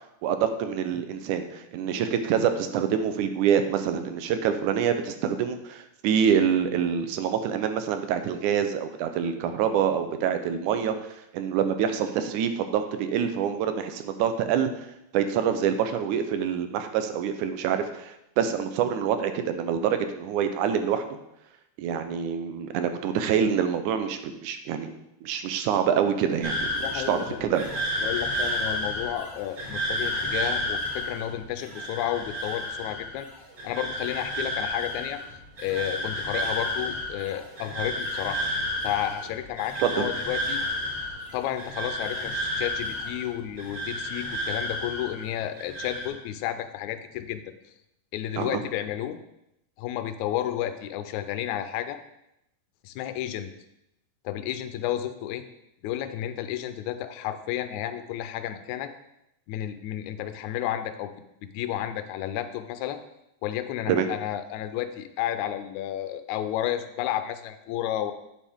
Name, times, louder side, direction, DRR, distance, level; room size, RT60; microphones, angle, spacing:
voice 1, 0.2-11.0 11.3-14.7 15.1-21.1 21.8-24.9 25.2-27.7 39.8-40.1 48.4-48.6 63.9-64.1, right 8 dB, 85° right, 8 dB, 2.2 m, -26 dB
sound 1, 26.4-45.3 45.6-46.1, equal, 40° right, 3.1 m, -31 dB
voice 2, 26.8-27.5 28.0-33.3 33.6-35.2 35.6-38.4 38.8-40.6 41.3-47.4 48.1-49.2 49.8-52.0 52.8-53.5 54.3-55.4 55.8-58.9 59.5-61.1 61.4-63.0 63.4-68.1, left 12 dB, 80° left, 9 dB, 2.0 m, -31 dB
9.2 x 7.3 x 3.5 m, 0.83 s
omnidirectional pair, 3.5 m